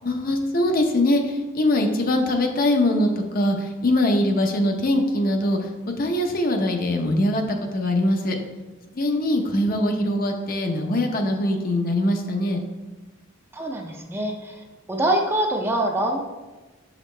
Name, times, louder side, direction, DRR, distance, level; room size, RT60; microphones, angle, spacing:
voice 1, 0.0-5.7 6.0-8.4 8.9-12.6, left 1 dB, 45° left, 4 dB, 0.7 m, -22 dB
voice 2, 13.5-16.2, right 1 dB, 10° right, 1 dB, 0.6 m, -25 dB
7.4 x 5.0 x 3.2 m, 1.2 s
head